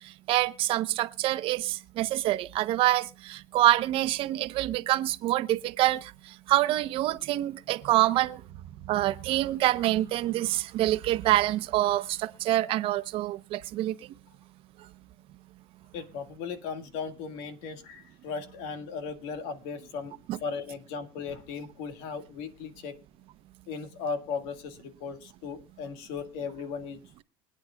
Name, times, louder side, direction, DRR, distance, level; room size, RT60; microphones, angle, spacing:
voice 1, 0.0-8.4 8.8-14.0 20.3-20.4, right 15 dB, 60° right, 0.8 m, -26 dB
voice 2, 15.9-20.1 20.4-22.9 23.7-27.0, left 5 dB, 80° left, 1.8 m, -37 dB
24.0 x 9.5 x 2.3 m
cardioid pair, 125°, 10 cm